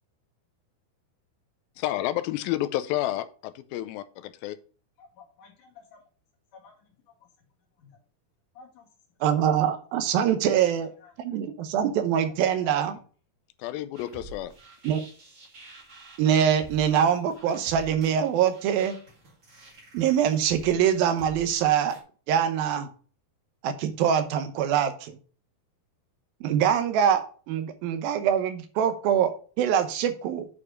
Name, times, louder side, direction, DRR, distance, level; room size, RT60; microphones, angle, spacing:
voice 1, 1.8-4.6 13.6-14.5, left 14 dB, 85° left, 13 dB, 2.4 m, -30 dB
voice 2, 5.0-6.0 6.5-6.8 7.1-7.2 7.8-7.9 8.5-8.9 10.4-10.6 11.0-11.1 12.4-12.8, left 4 dB, 60° left, 0 dB, 3.4 m, -51 dB
voice 3, 9.2-10.9 11.2-13.0 14.8-15.0 16.2-19.0 19.9-21.9 22.3-22.9 23.6-25.2 26.4-30.5, right 9 dB, 80° right, 9 dB, 2.7 m, -24 dB
sound 1, 13.9-22.0, right 2 dB, 30° right, 1.4 m, -48 dB
8.8 x 4.9 x 5.0 m, 0.40 s
omnidirectional pair, 4.3 m